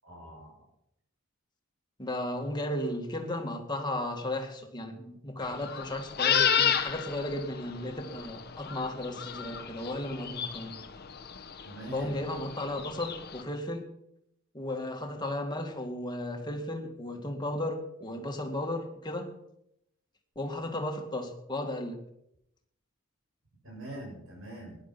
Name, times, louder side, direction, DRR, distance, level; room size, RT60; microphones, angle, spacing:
voice 1, 0.0-0.5 11.6-12.1 23.6-24.8, right 1 dB, 70° right, -2 dB, 7.2 m, -43 dB
voice 2, 2.0-10.7 11.9-13.9 14.5-19.4 20.4-22.0, left 1 dB, 20° left, 3 dB, 2.2 m, -35 dB
sound 1, 5.4-13.4, left 8 dB, 50° left, 1.1 m, -31 dB
18.0 x 11.0 x 6.0 m, 0.79 s
head